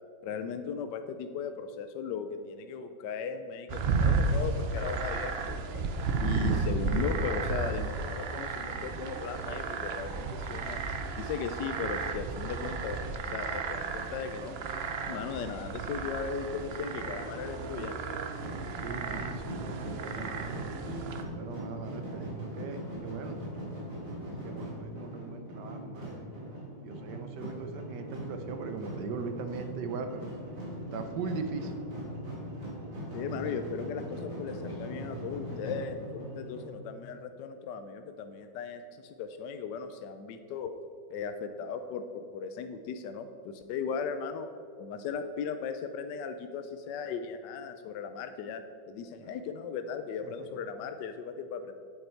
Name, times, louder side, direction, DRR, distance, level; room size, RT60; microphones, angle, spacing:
voice 1, 0.2-5.8 6.2-10.8 11.2-13.0 13.2-14.6 15.0-17.9 33.1-40.7 41.1-44.5 44.8-51.7, left 6 dB, 75° left, 8 dB, 1.2 m, -37 dB
sound 1, 3.7-21.2, right 4 dB, 85° right, 0.5 m, -33 dB
sound 2, 18.3-36.7, equal, 45° right, 2.6 m, -40 dB
voice 2, 18.7-20.7 21.3-23.4 24.4-26.3 26.8-30.3 30.9-31.7 49.2-49.3 50.2-50.5, right 5 dB, 70° right, 7 dB, 1.3 m, -39 dB
Guitar, 34.7-37.3, left 9 dB, 30° right, 2.1 m, -51 dB
8.8 x 8.0 x 4.5 m, 2.5 s
omnidirectional pair, 2.0 m